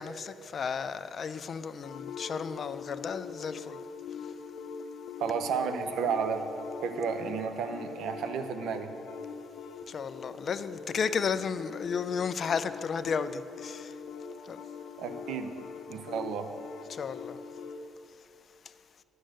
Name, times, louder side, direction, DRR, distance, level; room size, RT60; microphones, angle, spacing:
voice 1, 0.0-3.8 9.9-13.9 14.5-14.6 16.9-17.4, left 6 dB, 50° left, 12 dB, 0.4 m, -33 dB
sound 1, 1.8-17.8, left 6 dB, 85° left, 0.6 m, -43 dB
voice 2, 5.2-6.5 6.8-8.9 15.0-15.5 15.9-16.5, right 6 dB, 80° right, 8 dB, 0.7 m, -32 dB
10.0 x 6.4 x 7.6 m, 2.7 s
cardioid pair, 90°, 0 cm